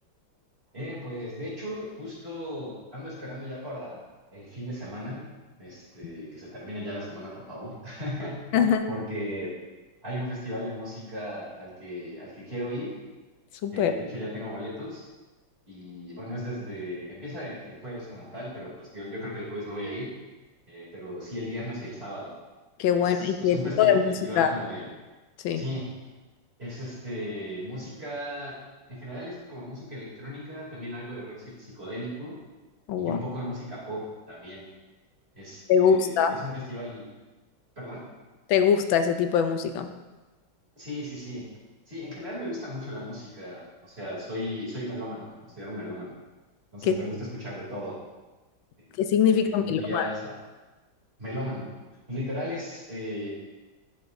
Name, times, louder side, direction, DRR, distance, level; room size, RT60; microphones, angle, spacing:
voice 1, 0.7-4.0 4.3-5.2 5.6-8.5 8.9-9.6 10.0-12.9 13.7-15.0 15.7-20.1 20.7-22.4 22.9-24.9 25.5-25.9 26.6-28.6 28.9-32.4 33.0-34.6 35.3-37.1 37.8-38.1 40.7-41.5 41.9-46.1 46.7-48.0 49.3-50.4 51.2-51.7 52.1-53.3, equal, 30° right, -6 dB, 3.1 m, -36 dB
voice 2, 13.6-13.9 22.8-24.5 25.4-25.6 32.9-33.2 35.7-36.4 38.5-39.9 46.9-47.0 49.0-50.1, left 7 dB, 85° left, 7 dB, 1.4 m, -22 dB
11.0 x 8.0 x 2.6 m, 1.2 s
omnidirectional pair, 2.1 m